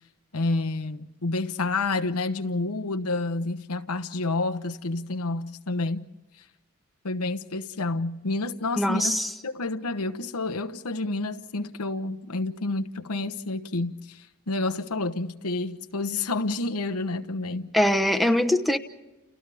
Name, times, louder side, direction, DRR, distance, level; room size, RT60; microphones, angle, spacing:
voice 1, 0.3-6.0 7.0-9.2 9.4-17.7, left 3 dB, 90° left, 1.1 m, -29 dB
voice 2, 8.8-9.3 17.7-18.8, left 1 dB, ahead, 1.0 m, -22 dB
30.0 x 29.5 x 3.5 m
head